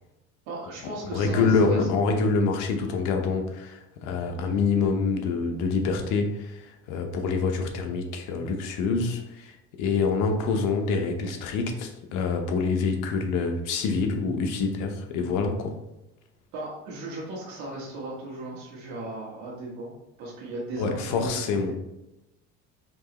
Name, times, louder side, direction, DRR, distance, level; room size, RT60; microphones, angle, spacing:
voice 1, 0.5-1.9 16.5-19.9 20.2-21.3 21.7-21.8, right 2 dB, 85° right, -5 dB, 1.3 m, -36 dB
voice 2, 1.1-15.8 20.8-21.7, left 4 dB, 75° left, 4 dB, 0.8 m, -26 dB
4.5 x 3.1 x 2.9 m, 0.92 s
cardioid pair, 125°, 31 cm